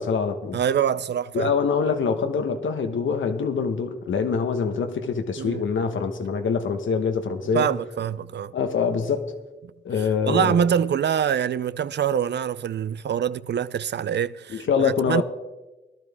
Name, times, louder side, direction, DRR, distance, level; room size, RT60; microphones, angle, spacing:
voice 1, 0.0-0.6 1.3-7.7 8.5-9.2 9.8-10.5 14.5-15.2, left 5 dB, 75° left, 1.2 m, -24 dB
voice 2, 0.5-1.5 5.4-5.6 7.5-8.5 10.0-15.2, right 8 dB, 60° right, 0.5 m, -25 dB
17.5 x 12.0 x 3.6 m
cardioid pair, 50°, 20 cm